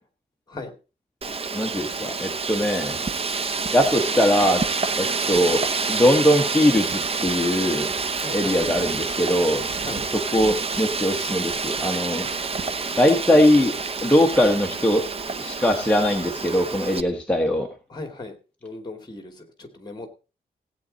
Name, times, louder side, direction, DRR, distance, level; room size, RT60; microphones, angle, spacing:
Wind, 1.2-17.0, right 4 dB, 35° right, 0.8 m, -28 dB
voice 1, 1.5-3.0 3.7-4.6 5.0-5.6 5.9-7.9 8.3-9.7 10.1-12.3 13.0-13.7 14.0-15.0 15.4-17.7, left 1 dB, 5° left, 0 dB, 1.3 m, -21 dB
voice 2, 8.2-8.6 9.8-10.0 17.9-18.3 18.6-20.1, left 2 dB, 25° left, 6 dB, 2.4 m, -37 dB
16.5 x 8.8 x 4.1 m, 0.33 s
wide cardioid pair, 150°, 16 cm